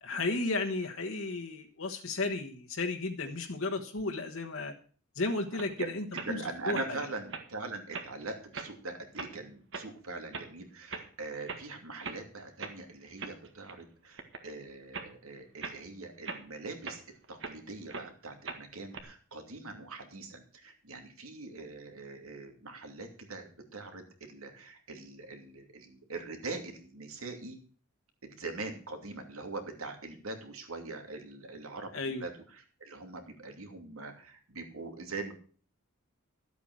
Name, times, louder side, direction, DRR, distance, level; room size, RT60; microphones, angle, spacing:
voice 1, 0.0-4.7 5.1-6.8 31.9-32.2, left 3 dB, 70° left, 3 dB, 1.3 m, -34 dB
sound 1, 5.6-5.7 6.1-6.3 6.7-6.9 7.3-7.5 7.9-8.2 8.5-8.7 9.1-9.3 9.7-9.9 10.3-10.5 10.9-11.1 11.4-11.7 12.0-12.2 12.6-12.8 13.2-13.8 14.2-14.5 14.9-15.1 15.6-15.8 16.2-17.6 17.9-18.1 18.5-19.0, right 4 dB, 60° right, 1.7 m, -40 dB
voice 2, 6.1-17.0 17.3-27.6 28.2-35.3, right 3 dB, 80° right, 5 dB, 2.8 m, -42 dB
12.5 x 8.4 x 6.2 m, 0.41 s
head